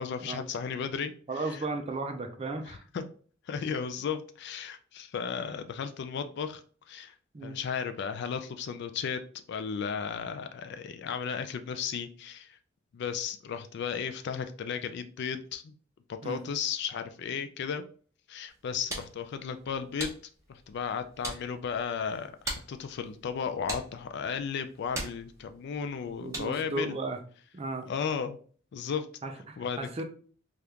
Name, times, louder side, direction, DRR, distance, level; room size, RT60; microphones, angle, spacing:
voice 1, 0.0-1.6 2.9-3.0 3.5-6.6 6.9-7.1 7.4-9.2 9.5-12.6 12.9-15.7 16.1-17.8 18.3-20.1 20.5-27.0 27.9-28.4 28.7-29.1 29.6-29.9, left 6 dB, 60° left, 9 dB, 0.3 m, -34 dB
voice 2, 1.3-2.8 7.3-7.6 16.2-16.4 26.1-27.2 27.5-27.9 29.2-30.0, right 3 dB, 30° right, 6 dB, 0.4 m, -35 dB
sound 1, 18.5-26.8, right 1 dB, 15° right, 1.0 m, -42 dB
3.4 x 2.4 x 2.8 m, 0.44 s
head